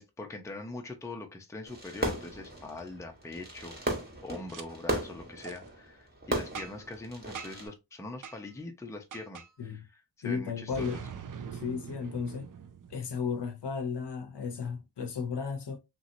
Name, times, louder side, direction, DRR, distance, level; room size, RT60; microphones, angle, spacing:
voice 1, 0.0-3.8 4.2-9.8 10.2-11.0, left 2 dB, 5° left, 0.6 m, -42 dB
Fireworks, 1.7-7.7, right 1 dB, 20° right, 1.2 m, -36 dB
Boom, 4.5-4.6 5.4-5.6 6.5-6.9 7.3-7.7 8.2-8.4 9.1-9.5 10.7-13.4, right 7 dB, 45° right, 0.5 m, -43 dB
voice 2, 10.2-11.0 11.5-12.5 12.9-15.8, left 6 dB, 60° left, 0.8 m, -34 dB
3.0 x 2.8 x 2.6 m
wide cardioid pair, 65°, 47 cm